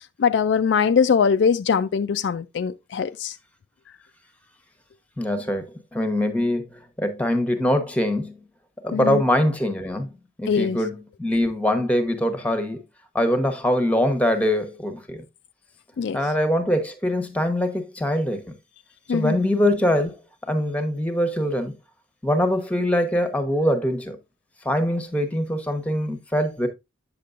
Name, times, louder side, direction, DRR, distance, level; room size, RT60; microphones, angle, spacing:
voice 1, 0.2-3.4 8.9-9.2 10.5-10.8 16.0-16.2 19.1-19.4, left 6 dB, 60° left, 0.3 m, -21 dB
voice 2, 5.2-8.4 8.8-10.1 10.4-12.8 13.1-15.2 16.1-18.5 19.1-20.2 20.5-21.8 22.2-24.2 24.6-26.7, left 1 dB, 5° left, 0.9 m, -23 dB
8.5 x 6.7 x 2.4 m
head